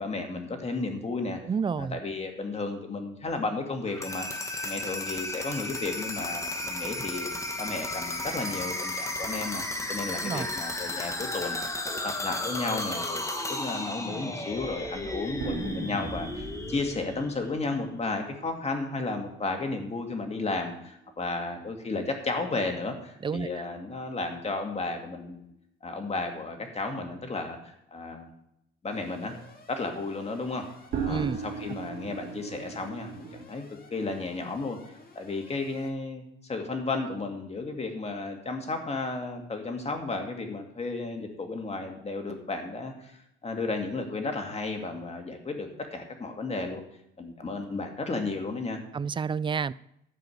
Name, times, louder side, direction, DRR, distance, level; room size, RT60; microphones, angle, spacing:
voice 1, 0.0-1.4 1.8-4.3 4.6-7.3 7.6-9.6 9.9-11.6 11.8-25.5 25.8-28.3 28.8-29.4 29.7-30.7 31.0-46.8 47.2-48.8, left 3 dB, 30° left, 4 dB, 2.3 m, -33 dB
voice 2, 1.4-2.0 10.2-10.5 23.2-23.5 31.1-31.4 48.9-49.7, right 6 dB, 25° right, 19 dB, 0.4 m, -29 dB
sound 1, 3.9-17.7, left 2 dB, 15° left, 1.4 m, -34 dB
sound 2, 15.4-22.0 22.3-22.4 22.8-22.9 30.9-33.5, right 6 dB, 65° right, 2.6 m, -39 dB
Alarm, 28.9-35.9, left 3 dB, 45° left, 2.2 m, -54 dB
12.0 x 5.1 x 7.9 m, 0.80 s
cardioid pair, 90°, 20 cm